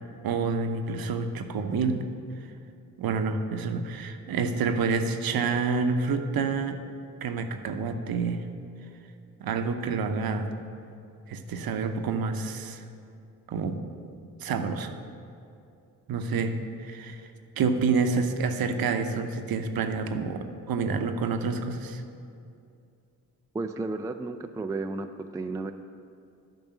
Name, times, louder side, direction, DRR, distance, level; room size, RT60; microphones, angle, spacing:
voice 1, 0.2-2.0 3.0-6.8 7.2-8.4 9.4-10.5 11.3-12.8 13.5-13.8 14.4-15.0 16.1-17.2 17.6-22.0, right 4 dB, 55° right, 7 dB, 0.8 m, -28 dB
voice 2, 23.5-25.7, right 3 dB, 10° right, 7 dB, 0.3 m, -33 dB
9.1 x 5.4 x 6.0 m, 2.5 s
hypercardioid pair, 45°, 43 cm